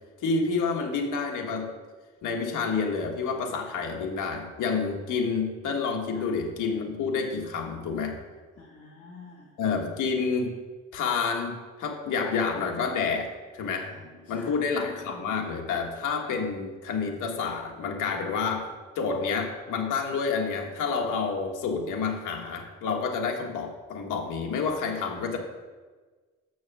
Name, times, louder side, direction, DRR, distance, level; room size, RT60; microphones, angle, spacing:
voice 1, 0.2-1.7 2.2-8.2 9.6-10.5 10.9-13.9 14.3-18.7 18.9-25.4, left 5 dB, 90° left, 2 dB, 1.5 m, -29 dB
voice 2, 8.6-9.5 13.8-15.8, left 5 dB, 50° left, -3 dB, 1.8 m, -47 dB
7.1 x 6.2 x 7.3 m, 1.4 s
cardioid pair, 120°, 30 cm